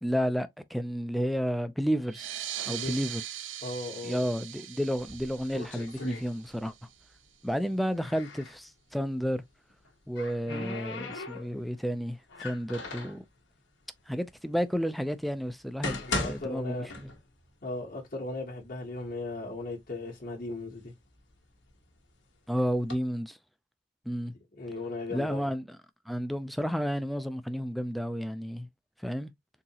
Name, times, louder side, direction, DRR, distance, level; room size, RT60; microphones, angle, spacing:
voice 1, 0.0-2.3 2.7-3.2 4.0-6.7 7.4-9.4 10.1-13.2 14.1-17.1 22.5-23.4 24.1-24.3 25.1-25.8 26.1-28.7 29.0-29.3, equal, ahead, 0.3 m, -31 dB
sound 1, 2.0-7.2, right 11 dB, 80° right, 0.5 m, -41 dB
voice 2, 2.6-3.0 3.6-4.2 16.0-17.0 17.6-20.9 24.6-25.5, left 2 dB, 45° left, 1.1 m, -37 dB
sound 2, 5.0-6.9 7.2-8.6 9.7-11.7 12.3-13.2 14.0-14.1 14.8-14.9 15.5-17.5 17.8-17.9 18.6-18.7 19.1-19.7 20.3-22.0 22.6-22.9, left 3 dB, 70° left, 1.1 m, -38 dB
3.9 x 2.8 x 2.8 m
head